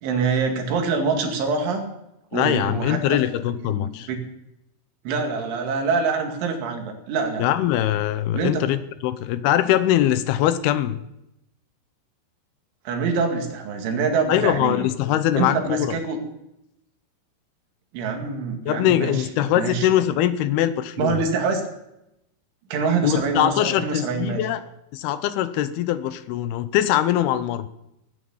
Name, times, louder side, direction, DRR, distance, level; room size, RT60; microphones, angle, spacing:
voice 1, 0.0-1.9 2.3-3.2 3.6-4.2 5.1-7.4 8.3-8.6 12.9-14.9 15.3-16.2 17.9-19.3 19.5-19.9 21.0-21.6 22.7-24.5, right 4 dB, 85° right, 3 dB, 4.5 m, -25 dB
voice 2, 2.3-4.1 7.4-11.0 14.3-15.9 18.7-21.2 23.0-24.6 24.9-27.7, left 12 dB, 80° left, 12 dB, 2.4 m, -22 dB
17.5 x 9.5 x 7.2 m, 0.85 s
omnidirectional pair, 5.3 m